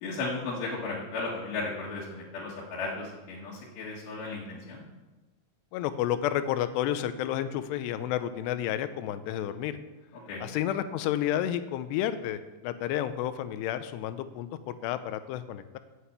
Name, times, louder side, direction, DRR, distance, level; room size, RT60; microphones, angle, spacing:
voice 1, 0.0-4.8 10.3-10.5, left 3 dB, 60° left, -5 dB, 3.3 m, -35 dB
voice 2, 5.7-9.8 10.4-15.8, left 11 dB, 80° left, 11 dB, 2.6 m, -31 dB
8.5 x 7.8 x 8.2 m, 1.1 s
omnidirectional pair, 5.3 m